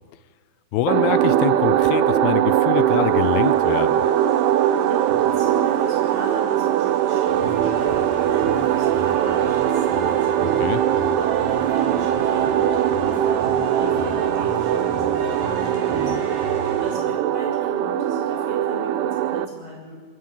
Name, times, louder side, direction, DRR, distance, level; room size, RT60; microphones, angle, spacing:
voice 1, 0.7-4.1 10.4-10.8, left 12 dB, 80° left, 14 dB, 2.5 m, -25 dB
sound 1, 0.9-19.5, right 11 dB, 85° right, 2.8 m, -21 dB
sound 2, 2.9-17.0, left 2 dB, 55° left, 7.1 m, -50 dB
voice 2, 4.8-10.4 11.1-16.3 16.8-20.0, right 1 dB, 30° right, -2 dB, 7.5 m, -37 dB
sound 3, 7.3-16.8, right 2 dB, 60° right, 4.0 m, -33 dB
24.0 x 21.0 x 5.8 m, 1.5 s
omnidirectional pair, 4.6 m